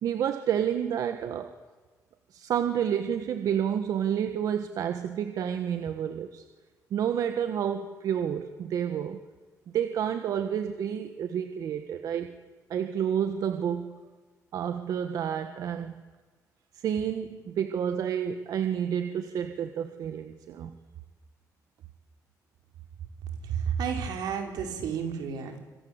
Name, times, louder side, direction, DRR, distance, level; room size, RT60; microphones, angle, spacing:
voice 1, 0.0-1.5 2.3-6.4 6.9-9.2 9.7-12.3 12.7-13.9 14.5-15.9 16.7-20.7, right 8 dB, 65° right, 9 dB, 1.6 m, -29 dB
voice 2, 23.4-25.6, right 7 dB, 85° right, 4 dB, 5.4 m, -31 dB
27.0 x 24.5 x 8.2 m, 1.3 s
cardioid pair, 140°, 7 cm